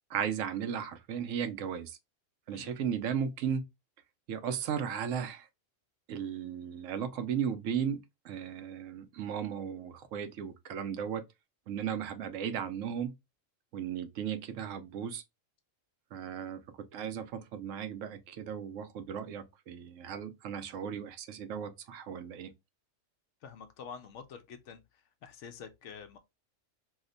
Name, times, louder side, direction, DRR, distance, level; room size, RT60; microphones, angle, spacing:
voice 1, 0.1-2.0 2.5-3.6 4.3-5.5 6.1-8.0 8.2-11.2 11.7-13.1 13.7-15.2 16.1-16.6 16.9-22.5, right 8 dB, 75° right, 0.9 m, -35 dB
voice 2, 2.5-2.8 23.4-24.8 25.2-26.2, left 6 dB, 70° left, 0.9 m, -47 dB
2.8 x 2.1 x 3.7 m
omnidirectional pair, 1.3 m